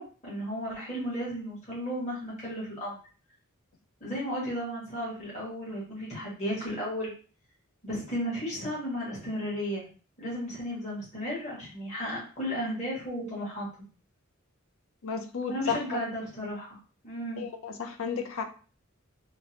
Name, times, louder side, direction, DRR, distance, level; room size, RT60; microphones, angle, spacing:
voice 1, 0.0-3.0 4.0-7.1 7.8-9.9 10.2-13.7 15.5-16.8 17.0-17.4, equal, 35° left, -7 dB, 1.3 m, -34 dB
voice 2, 15.0-16.0 17.4-18.4, left 6 dB, 70° left, 7 dB, 0.5 m, -33 dB
3.7 x 2.1 x 2.8 m, 0.39 s
head